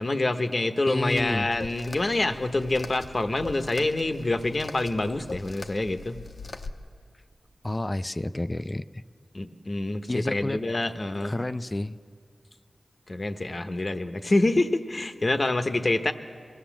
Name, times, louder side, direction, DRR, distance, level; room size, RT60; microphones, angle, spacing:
voice 1, 0.0-6.2 9.3-11.4 13.1-16.1, left 2 dB, 50° left, 8 dB, 1.0 m, -26 dB
voice 2, 0.9-1.5 7.6-8.8 10.1-10.6 11.2-12.0, left 1 dB, 30° left, 13 dB, 0.5 m, -30 dB
sound 1, 1.1-6.7, left 3 dB, 65° left, 0.9 m, -42 dB
23.0 x 15.5 x 7.2 m, 2.1 s
cardioid pair, 45°, 0 cm